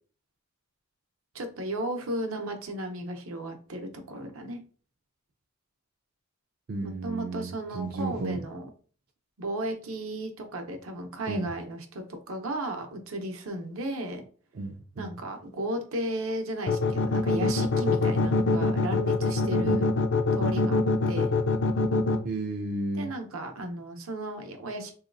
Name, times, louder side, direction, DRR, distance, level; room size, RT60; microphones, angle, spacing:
voice 1, 1.3-4.6 6.8-8.7 9.4-14.2 15.0-19.8 20.4-21.4 22.9-25.0, right 1 dB, 70° right, 4 dB, 0.7 m, -35 dB
voice 2, 6.7-8.5 11.3-11.5 14.5-15.1 19.6-19.9 22.2-23.1, right 2 dB, 45° right, 2 dB, 0.4 m, -33 dB
sound 1, 16.7-22.2, left 3 dB, 60° left, 0.4 m, -23 dB
3.8 x 2.8 x 2.5 m, 0.41 s
head